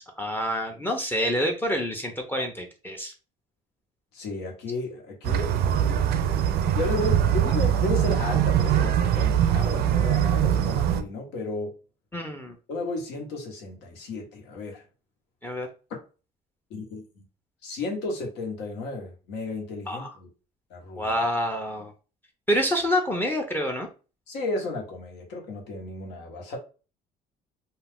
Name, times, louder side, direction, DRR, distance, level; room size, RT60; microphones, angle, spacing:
voice 1, 0.2-3.1 12.1-12.6 15.4-15.7 19.9-20.1 21.0-21.9 22.5-23.9, equal, 10° left, 0.5 m, -27 dB
voice 2, 4.1-6.1 6.7-11.7 12.7-14.8 16.7-17.0 17.6-20.3 20.7-21.1 24.3-26.6, left 3 dB, 90° left, 1.0 m, -33 dB
sound 1, 5.2-11.0, right 9 dB, 70° right, 0.4 m, -22 dB
2.3 x 2.3 x 3.4 m
cardioid pair, 110°, 17 cm